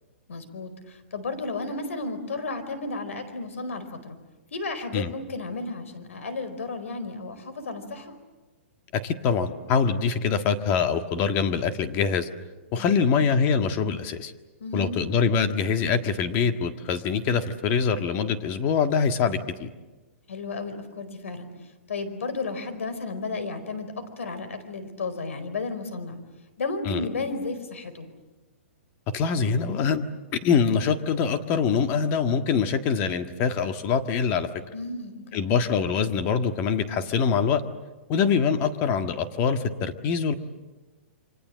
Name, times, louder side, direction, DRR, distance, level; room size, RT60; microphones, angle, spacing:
voice 1, 0.3-4.2 4.5-8.1 12.7-13.1 14.6-15.0 20.3-21.5 21.9-26.2 26.6-28.1 34.7-35.5, left 3 dB, 90° left, 11 dB, 4.6 m, -33 dB
voice 2, 8.9-12.3 12.7-14.3 14.7-19.7 26.8-27.1 29.1-30.0 30.3-34.5 35.3-37.6 38.1-40.3, left 6 dB, 30° left, 7 dB, 1.6 m, -24 dB
28.5 x 25.0 x 7.6 m, 1.2 s
hypercardioid pair, 155°, 7 cm